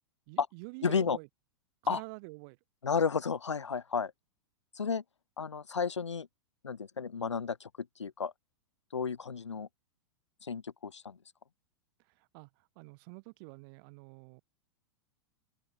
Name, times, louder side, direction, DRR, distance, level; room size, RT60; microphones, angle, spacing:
voice 1, 0.3-1.3 1.8-2.6 12.3-12.5 12.8-14.4, right 31 dB, 50° right, 7.9 m, -47 dB
voice 2, 0.8-1.2 1.9-2.0 2.8-4.1 4.7-5.0 5.4-6.3 6.6-7.7 8.0-8.3 8.9-9.7 10.4-11.2, left 6 dB, 85° left, 2.7 m, -32 dB
open air
hypercardioid pair, 105°, 15 cm